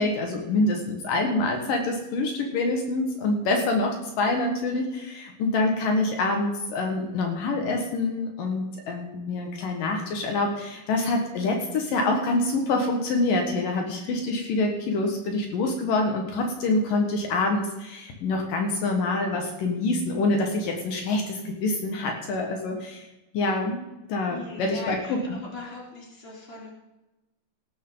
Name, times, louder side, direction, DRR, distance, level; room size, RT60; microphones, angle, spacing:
voice 1, 0.0-23.0 23.3-23.8 24.1-25.2, left 2 dB, 70° left, 2 dB, 3.1 m, -26 dB
voice 2, 24.3-25.2 25.4-26.7, left 3 dB, 15° left, -2 dB, 3.3 m, -40 dB
18.5 x 12.0 x 3.9 m, 1.0 s
omnidirectional pair, 4.2 m